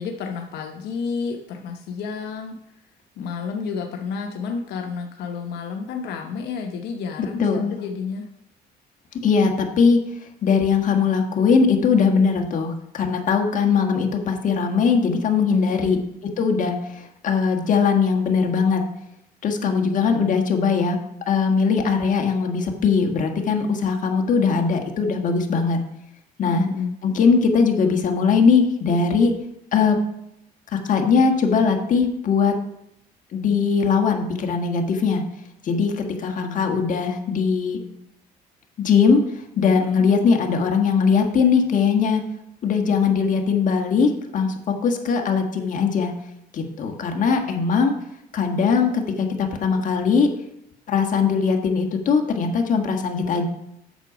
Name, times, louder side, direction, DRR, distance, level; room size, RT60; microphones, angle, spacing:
voice 1, 0.0-2.6 3.2-8.3 15.5-16.1 19.7-20.3 26.4-26.9 36.4-36.9 39.9-40.1, left 5 dB, 80° left, 3 dB, 0.9 m, -30 dB
voice 2, 7.2-7.8 9.2-10.0 10.4-18.8 19.4-21.0 21.3-25.8 26.4-26.6 27.0-29.3 29.7-30.0 30.7-32.5 33.3-35.2 35.6-37.8 38.8-39.2 39.6-42.2 42.6-46.1 46.5-47.9 48.3-50.3 50.9-53.5, left 5 dB, 50° left, 4 dB, 1.5 m, -20 dB
8.0 x 7.0 x 5.0 m, 0.78 s
cardioid pair, 110°, 17 cm